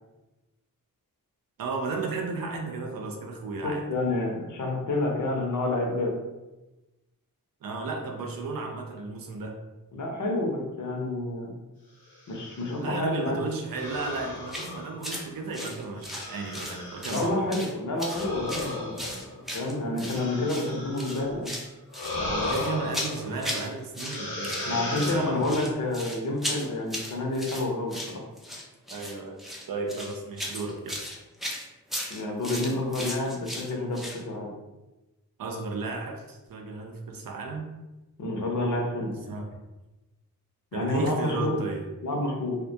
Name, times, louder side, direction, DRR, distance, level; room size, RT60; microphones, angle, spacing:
voice 1, 1.6-3.9 7.6-9.6 12.8-17.5 22.1-25.4 28.9-31.0 35.4-37.7 39.1-39.6 40.7-41.9, right 3 dB, 70° right, 3 dB, 0.5 m, -34 dB
voice 2, 3.6-6.1 9.9-11.5 12.3-13.4 17.1-19.3 19.5-21.5 24.7-28.2 32.1-34.5 38.2-39.2 40.7-41.6 42.0-42.6, left 2 dB, 55° left, 0 dB, 0.7 m, -29 dB
sound 1, 12.1-12.8 13.7-15.4 16.0-17.3 18.0-21.3 21.9-23.6 24.0-25.7, left 2 dB, 85° left, 0.8 m, -36 dB
sound 2, 14.5-14.7 15.0-15.3 15.5-16.8 17.0-17.7 18.0-20.2 20.5-20.7 21.0-21.7 21.9-23.7 23.9-24.7 24.9-34.2, left 1 dB, ahead, 0.4 m, -36 dB
2.2 x 2.1 x 2.7 m, 1.0 s
cardioid pair, 65°, 36 cm